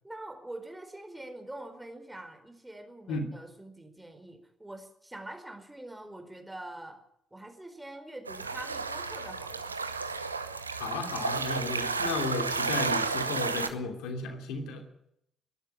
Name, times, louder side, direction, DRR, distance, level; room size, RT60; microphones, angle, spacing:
voice 1, 0.0-7.0 7.3-9.8, right 1 dB, 10° right, 7 dB, 4.5 m, -44 dB
sound 1, 8.3-13.7, right 4 dB, 90° right, 0.9 m, -32 dB
voice 2, 10.8-14.8, left 3 dB, 65° left, 6 dB, 2.9 m, -34 dB
22.5 x 12.0 x 10.0 m, 0.75 s
figure-of-eight pair, 45°, 0 cm